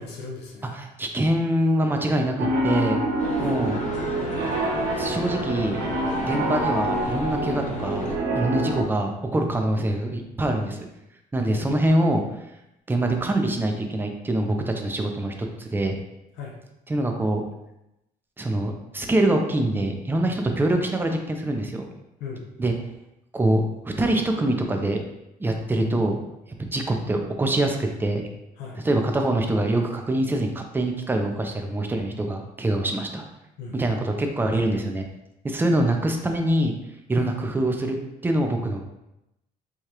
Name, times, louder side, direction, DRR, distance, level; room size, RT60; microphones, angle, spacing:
voice 1, 0.0-0.7 3.4-3.6 11.5-11.7 16.4-16.5 22.2-22.5 28.6-28.8 33.6-33.9 37.2-37.3, left 4 dB, 80° left, -1 dB, 0.8 m, -37 dB
voice 2, 0.7-3.0 3.4-3.8 4.9-5.8 6.2-10.9 11.3-12.2 12.9-16.0 16.9-17.4 18.4-21.9 22.6-22.7 23.3-25.0 25.4-26.2 26.6-28.2 28.8-33.2 33.7-35.0 35.4-36.7 37.1-38.0 38.2-38.8, right 1 dB, 10° right, 3 dB, 0.5 m, -24 dB
Piano, 2.4-8.8, right 2 dB, 90° right, 0.6 m, -26 dB
sound 1, 3.2-8.2, left 2 dB, 45° left, 0.8 m, -33 dB
4.8 x 2.4 x 2.9 m, 0.88 s
cardioid pair, 110°, 17 cm